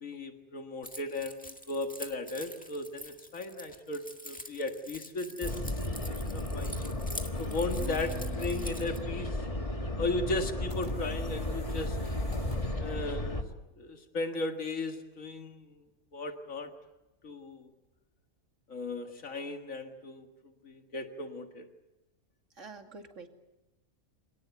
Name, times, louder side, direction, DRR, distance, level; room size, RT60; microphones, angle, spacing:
voice 1, 0.0-5.6 6.1-6.8 7.4-9.4 10.0-12.0 12.8-13.4 13.8-15.7 16.1-16.7 17.2-17.7 18.7-20.3 20.6-21.7, left 2 dB, 90° left, 5 dB, 2.2 m, -36 dB
Keys jangling, 0.8-9.0, equal, 5° left, 1.7 m, -46 dB
sound 1, 5.4-13.4, left 1 dB, 25° left, 1.9 m, -34 dB
voice 2, 7.8-9.1 22.5-23.3, right 7 dB, 70° right, 4 dB, 2.8 m, -46 dB
sound 2, 10.6-12.8, equal, 45° left, 5.8 m, -51 dB
27.0 x 18.5 x 9.3 m, 1.0 s
omnidirectional pair, 1.4 m